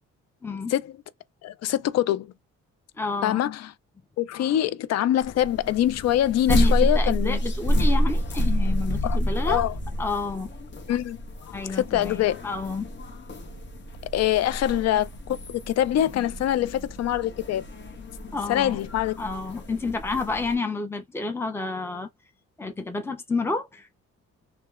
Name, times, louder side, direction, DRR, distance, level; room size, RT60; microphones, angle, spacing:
voice 1, 0.4-0.7 3.0-3.4 6.5-9.6 10.0-10.5 11.5-12.9 18.3-18.8 19.2-22.1 22.6-23.9, left 3 dB, 10° left, 0.7 m, -29 dB
voice 2, 1.4-2.3 3.2-3.7 4.2-7.4 9.0-9.7 10.9-11.2 11.5-12.4 14.1-17.6 18.5-19.2, left 12 dB, 60° left, 0.5 m, -24 dB
sound 1, 5.2-20.6, equal, 40° left, 0.9 m, -29 dB
2.8 x 2.2 x 2.4 m
cardioid pair, 90°, 30 cm